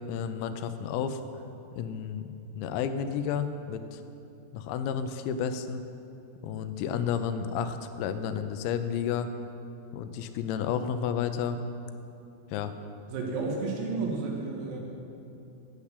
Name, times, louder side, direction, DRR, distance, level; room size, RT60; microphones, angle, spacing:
voice 1, 0.1-1.2 1.7-4.0 4.5-5.8 6.4-9.3 9.9-11.6 12.5-12.7, left 7 dB, 85° left, 9 dB, 3.4 m, -31 dB
voice 2, 13.1-14.8, right 3 dB, 85° right, -1 dB, 4.3 m, -31 dB
10.5 x 7.2 x 8.2 m, 2.8 s
omnidirectional pair, 6.0 m